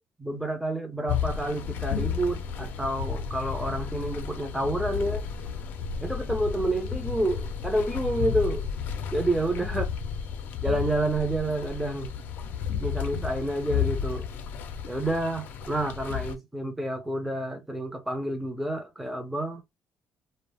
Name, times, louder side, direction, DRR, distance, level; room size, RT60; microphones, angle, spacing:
voice 1, 0.2-5.3 6.0-8.7 9.1-9.8 10.6-12.1 12.8-14.3 14.9-19.6, right 1 dB, 5° right, 0.5 m, -29 dB
sound 1, 1.1-16.4, left 7 dB, 70° left, 0.4 m, -32 dB
2.4 x 2.0 x 3.2 m
cardioid pair, 125°, 3 cm